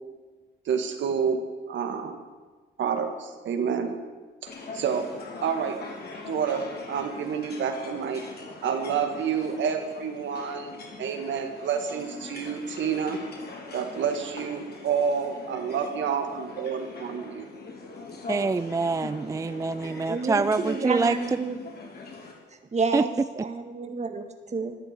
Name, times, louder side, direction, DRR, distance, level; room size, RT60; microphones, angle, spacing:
voice 1, 0.7-1.4 1.7-2.2 2.8-3.9 4.7-5.0 5.4-5.8 6.2-8.2 8.6-10.7 11.0-13.2 13.7-17.4, right 7 dB, 70° right, 5 dB, 2.1 m, -28 dB
sound 1, 4.5-22.3, left 3 dB, 55° left, 3.5 m, -42 dB
voice 2, 18.3-21.2 22.9-23.0, right 3 dB, 15° right, 13 dB, 0.4 m, -25 dB
voice 3, 20.1-21.6 22.7-23.1 23.4-24.2 24.5-24.8, right 4 dB, 35° right, 6 dB, 1.9 m, -29 dB
13.5 x 10.0 x 8.4 m, 1.3 s
cardioid pair, 90°, 20 cm